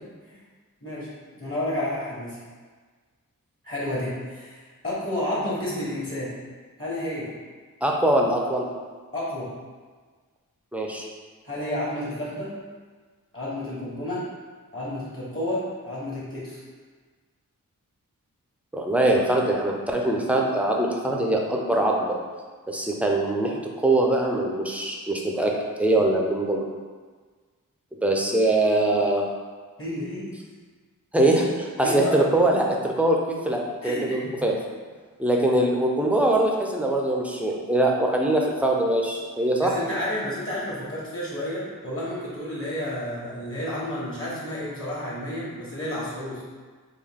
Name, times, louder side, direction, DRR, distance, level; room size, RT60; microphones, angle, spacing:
voice 1, 1.4-2.4 3.6-6.4 6.8-7.3 9.1-9.5 11.4-12.5 13.3-14.2 14.7-16.6 29.8-30.3 31.8-32.2 33.8-34.3 39.6-46.4, left 1 dB, 40° left, -8 dB, 1.4 m, -31 dB
voice 2, 7.8-8.7 10.7-11.1 18.7-22.2 22.7-25.5 25.8-26.7 28.0-29.2 31.1-33.2 33.4-34.5 35.2-39.7, right 1 dB, 5° right, -1 dB, 0.5 m, -22 dB
3.7 x 2.3 x 3.6 m, 1.5 s
wide cardioid pair, 50°, 34 cm